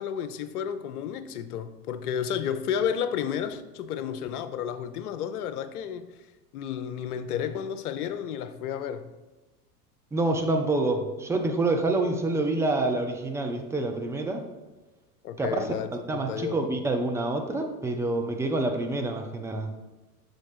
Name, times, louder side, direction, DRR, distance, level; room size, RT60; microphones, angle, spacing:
voice 1, 0.0-6.1 6.5-9.1 15.2-16.6, left 8 dB, 70° left, 0.7 m, -32 dB
voice 2, 10.1-14.4 15.4-15.7 16.1-19.7, right 2 dB, 5° right, 0.4 m, -27 dB
6.3 x 4.2 x 4.9 m
hypercardioid pair, 100°, 47 cm